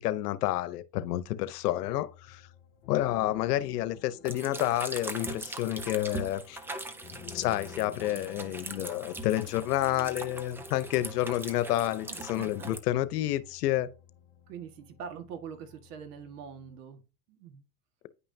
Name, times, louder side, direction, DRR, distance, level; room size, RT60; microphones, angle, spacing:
voice 1, 0.0-2.4 2.9-6.6 7.3-13.9, left 14 dB, 85° left, 0.9 m, -29 dB
sound 1, 1.0-16.8, left 8 dB, 40° left, 2.1 m, -53 dB
sound 2, 4.2-12.8, right 2 dB, 5° right, 0.4 m, -41 dB
voice 2, 12.1-12.7 14.5-17.0 17.3-17.6, right 7 dB, 80° right, 1.9 m, -44 dB
9.8 x 5.6 x 2.8 m
supercardioid pair, 135°, 46 cm